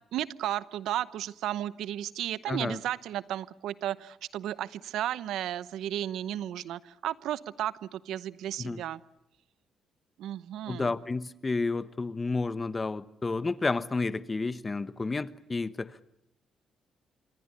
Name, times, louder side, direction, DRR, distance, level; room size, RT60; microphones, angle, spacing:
voice 1, 0.1-9.0 10.2-10.9, right 12 dB, 80° right, 0.9 m, -34 dB
voice 2, 2.5-2.8 8.6-8.8 10.7-16.2, left 3 dB, 25° left, 1.2 m, -31 dB
27.0 x 24.5 x 6.9 m
cardioid pair, 90°, 0 cm